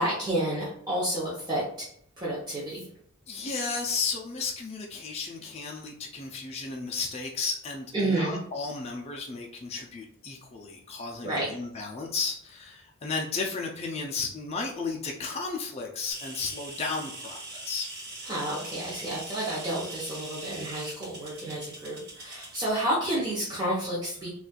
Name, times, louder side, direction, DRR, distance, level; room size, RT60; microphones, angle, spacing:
voice 1, 0.0-1.9 2.2-2.9 7.9-8.4 11.2-11.5 18.3-24.3, right 1 dB, 20° right, -7 dB, 0.8 m, -30 dB
voice 2, 3.3-18.0, left 4 dB, 30° left, -1 dB, 0.4 m, -34 dB
sound 1, 16.1-22.7, right 2 dB, 50° right, 1.3 m, -42 dB
4.0 x 2.4 x 2.2 m, 0.67 s
head